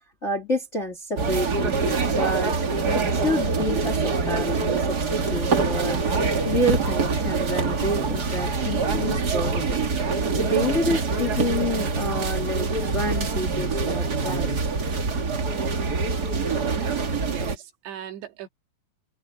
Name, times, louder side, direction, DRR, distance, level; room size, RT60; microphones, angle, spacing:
voice 1, 0.2-2.5 2.9-9.8 10.3-14.6 16.5-16.6, left 1 dB, 20° left, 2.0 m, -29 dB
sound 1, 1.2-17.5, right 4 dB, 55° right, 1.1 m, -25 dB
voice 2, 16.7-18.5, right 11 dB, 85° right, 4.2 m, -39 dB
omnidirectional pair, 4.9 m